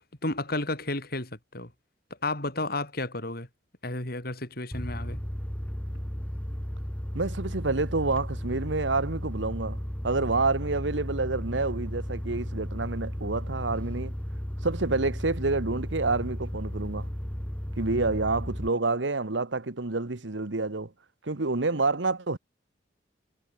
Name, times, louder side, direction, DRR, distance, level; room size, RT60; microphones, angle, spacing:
voice 1, 0.2-1.7 2.2-3.5 3.8-5.2, left 2 dB, 55° left, 6.6 m, -32 dB
sound 1, 4.7-18.7, equal, 5° left, 1.6 m, -34 dB
voice 2, 7.1-9.8 10.0-14.1 14.6-17.1 17.8-20.9 21.2-22.4, right 3 dB, 85° right, 1.4 m, -28 dB
head